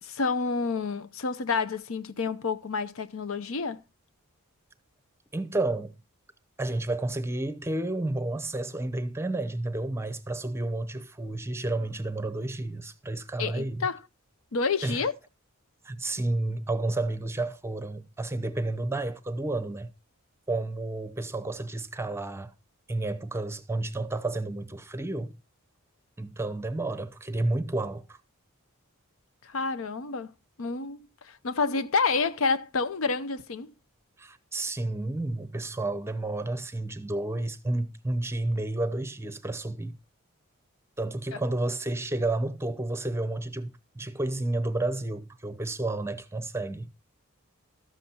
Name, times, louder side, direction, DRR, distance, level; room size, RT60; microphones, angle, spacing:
voice 1, 0.0-3.8 13.4-14.0 14.5-15.1 29.4-30.3 30.6-33.7 41.3-41.4, left 4 dB, 70° left, 0.7 m, -29 dB
voice 2, 5.3-5.9 6.6-13.9 14.8-15.0 15.8-19.9 20.5-22.5 22.9-25.4 26.2-28.2 34.2-40.0 41.0-46.9, right 2 dB, 10° right, 0.7 m, -31 dB
13.0 x 7.0 x 4.3 m
head